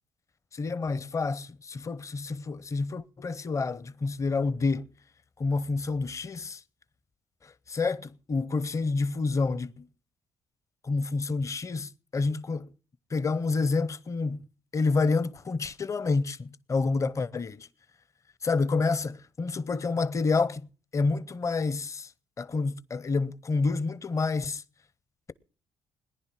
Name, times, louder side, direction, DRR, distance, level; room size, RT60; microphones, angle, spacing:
voice 1, 0.5-4.9 5.4-6.6 7.4-9.9 10.8-12.7 13.1-14.5 14.7-17.7 18.4-20.7 20.9-22.1 22.4-24.6, left 4 dB, 35° left, 0.7 m, -28 dB
18.5 x 10.5 x 6.0 m
cardioid pair, 75°, 9 cm